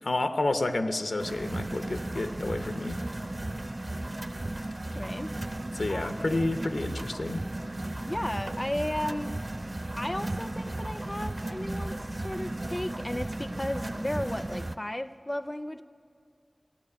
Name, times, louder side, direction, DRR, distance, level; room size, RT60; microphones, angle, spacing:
voice 1, 0.0-3.0 5.7-7.4, left 2 dB, 85° left, 8 dB, 0.7 m, -30 dB
sound 1, 1.2-14.8, right 1 dB, 40° right, 0.5 m, -35 dB
voice 2, 5.0-5.4 5.9-6.5 8.1-9.3 10.0-15.8, left 1 dB, 25° left, 13 dB, 0.4 m, -34 dB
15.5 x 8.4 x 9.8 m, 2.2 s
wide cardioid pair, 55°, 0 cm